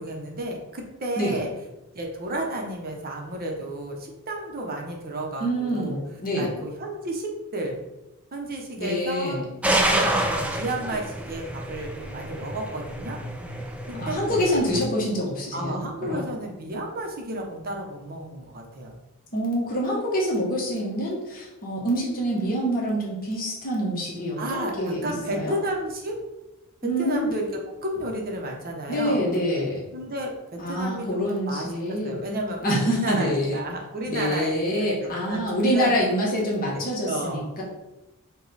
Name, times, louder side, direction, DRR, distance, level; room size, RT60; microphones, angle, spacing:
voice 1, 0.0-1.5 1.9-6.0 6.4-7.8 8.3-13.2 13.9-14.2 15.5-18.9 24.4-26.2 26.8-27.5 27.8-29.2 29.9-34.5 35.2-35.5 35.7-35.9 37.0-37.6, right 1 dB, 40° right, 1 dB, 0.7 m, -32 dB
voice 2, 5.4-6.5 8.8-9.4 14.0-16.2 19.3-25.5 26.8-27.2 28.9-29.8 30.6-32.1 32.6-33.6 34.1-37.6, equal, 40° left, -4 dB, 1.0 m, -26 dB
sound 1, 9.6-14.8, right 1 dB, 5° right, 0.4 m, -28 dB
4.9 x 2.2 x 3.9 m, 0.99 s
head